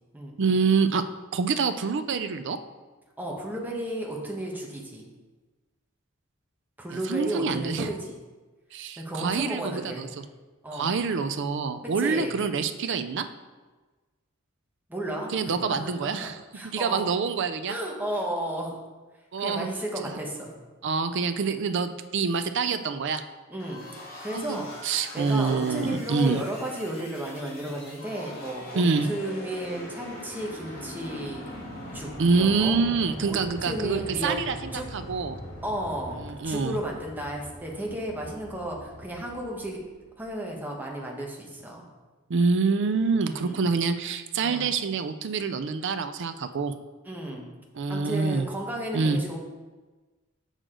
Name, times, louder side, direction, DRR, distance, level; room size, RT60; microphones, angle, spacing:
voice 1, 0.4-1.0 1.3-2.6 7.1-7.9 8.7-10.2 10.7-13.3 15.3-16.4 16.6-17.8 19.3-19.7 20.0-20.1 20.8-23.2 24.3-26.4 28.7-29.1 32.2-35.4 36.2-36.8 42.3-46.7 47.7-48.4 48.9-49.2, right 4 dB, 60° right, 9 dB, 0.5 m, -26 dB
voice 2, 3.2-5.1 6.8-8.1 9.0-10.1 10.6-11.0 12.0-12.3 14.9-17.0 17.7-18.8 19.4-20.5 23.5-23.8 24.2-24.7 25.1-31.4 31.9-32.8 33.3-34.4 34.7-34.8 35.6-36.2 36.4-39.8 40.2-41.8 43.3-43.6 44.4-44.7 47.0-47.5 47.9-49.4, right 1 dB, 10° right, -1 dB, 1.2 m, -33 dB
sound 1, 23.6-40.2, left 1 dB, 50° left, 2.5 m, -42 dB
6.5 x 6.3 x 3.8 m, 1.2 s
head